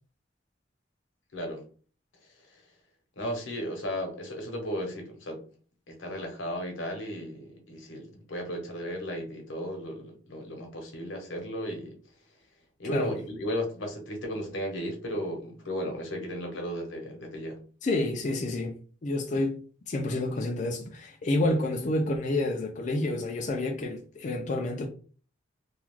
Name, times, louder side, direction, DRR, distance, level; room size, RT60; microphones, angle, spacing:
voice 1, 1.3-1.6 2.5-2.6 3.2-5.4 5.9-12.0 12.8-17.6, equal, 90° left, 0.8 m, -35 dB
voice 2, 17.8-24.9, left 2 dB, 40° left, 0.4 m, -29 dB
2.4 x 2.2 x 3.1 m
head